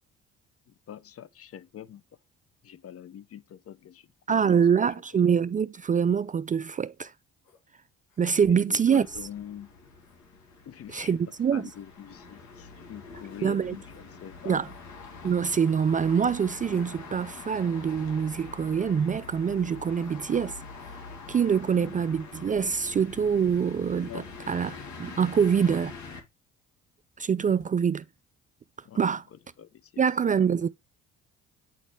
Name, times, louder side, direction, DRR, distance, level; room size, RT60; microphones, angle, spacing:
voice 1, 0.9-2.0 2.6-4.6 8.5-9.7 10.7-11.2 11.5-14.7 21.7-22.0 24.0-24.3 25.7-25.8 27.5-27.6 28.8-29.0 29.6-29.9, left 10 dB, 50° left, 0.7 m, -44 dB
voice 2, 4.3-7.1 8.2-9.1 10.9-11.7 13.4-13.8 14.5-14.7 15.2-20.6 21.3-25.9 27.2-28.0 29.0-29.2 30.0-30.7, right 7 dB, 25° right, 0.4 m, -25 dB
sound 1, 7.4-7.6 8.1-8.3 8.8-9.4 10.0-10.2 10.8-11.1 11.7-11.9 12.5-12.7 13.3-13.5 13.9-14.0 14.6-14.8 15.2-15.4 16.0-16.2 16.7-17.0 17.5-17.7 18.4-18.6 19.2-19.4 20.0-20.2 20.8-21.0 21.5-21.7, left 4 dB, 80° left, 1.9 m, -57 dB
sound 2, 9.0-26.2, left 4 dB, 65° left, 2.2 m, -45 dB
9.0 x 4.2 x 3.3 m
hypercardioid pair, 60°, 31 cm